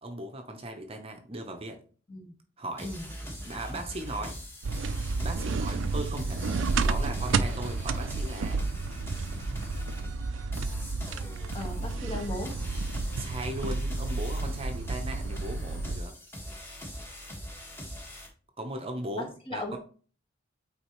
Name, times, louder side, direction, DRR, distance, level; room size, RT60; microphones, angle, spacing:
voice 1, 0.0-1.8 2.6-2.9 3.5-4.4 5.2-8.7 13.2-16.1 18.6-19.8, right 1 dB, 30° right, 5 dB, 0.7 m, -38 dB
sound 1, 2.8-18.3, equal, 15° left, 1.5 m, -42 dB
sound 2, 4.6-16.0, right 3 dB, 80° right, 0.4 m, -31 dB
voice 2, 11.5-12.6 19.2-19.8, left 2 dB, 30° left, 2 dB, 1.5 m, -37 dB
8.6 x 4.1 x 3.1 m, 0.41 s
head